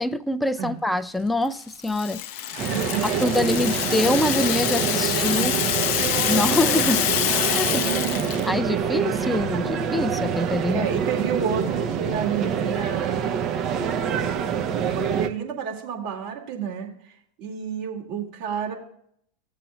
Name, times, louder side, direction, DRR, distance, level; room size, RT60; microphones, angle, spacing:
voice 1, 0.0-2.5 3.0-5.5 6.3-7.0 7.5-7.7 8.5-10.9, left 1 dB, 5° left, 0.4 m, -25 dB
Rattle (instrument), 1.5-8.5, left 11 dB, 50° left, 0.6 m, -26 dB
voice 2, 2.5-3.5 5.3-5.5 7.6-8.3 10.7-13.3 14.9-16.9 17.4-18.7, right 7 dB, 50° right, 2.2 m, -30 dB
sound 1, 2.6-15.3, right 7 dB, 35° right, 0.7 m, -26 dB
15.5 x 7.4 x 2.3 m
figure-of-eight pair, 90°, 0 cm